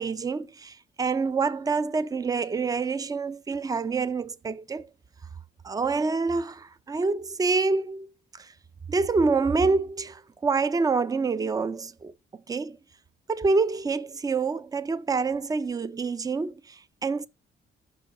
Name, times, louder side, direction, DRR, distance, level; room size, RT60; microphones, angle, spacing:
voice 1, 0.0-4.9 5.6-8.1 8.4-8.5 8.9-12.1 12.5-12.8 13.3-17.3, right 4 dB, 20° right, 0.4 m, -27 dB
5.9 x 4.6 x 3.7 m
cardioid pair, 90°, 20 cm